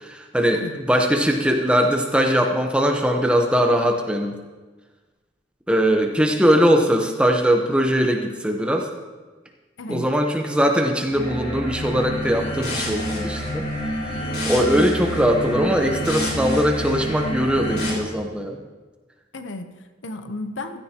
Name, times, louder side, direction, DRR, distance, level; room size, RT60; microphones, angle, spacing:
voice 1, 0.0-4.3 5.7-8.9 9.9-13.7 14.5-18.6, equal, 5° right, 2 dB, 0.9 m, -20 dB
voice 2, 9.8-10.1 14.6-14.9 19.3-20.8, left 2 dB, 80° left, 8 dB, 0.9 m, -34 dB
sound 1, 11.1-17.9, equal, 55° left, 3.2 m, -27 dB
16.0 x 13.5 x 2.9 m, 1.3 s
head